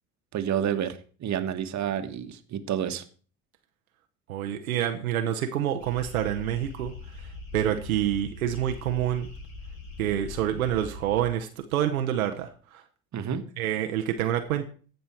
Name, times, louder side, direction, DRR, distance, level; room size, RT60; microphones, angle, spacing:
voice 1, 0.3-3.0 13.1-13.4, right 9 dB, 40° right, 8 dB, 1.4 m, -29 dB
voice 2, 4.3-6.9 7.5-9.3 10.0-12.8 13.6-14.7, right 11 dB, 85° right, 5 dB, 0.9 m, -27 dB
sound 1, 5.8-11.2, left 3 dB, 70° left, 3.4 m, -42 dB
15.5 x 5.6 x 4.4 m, 0.40 s
hypercardioid pair, 65°, 41 cm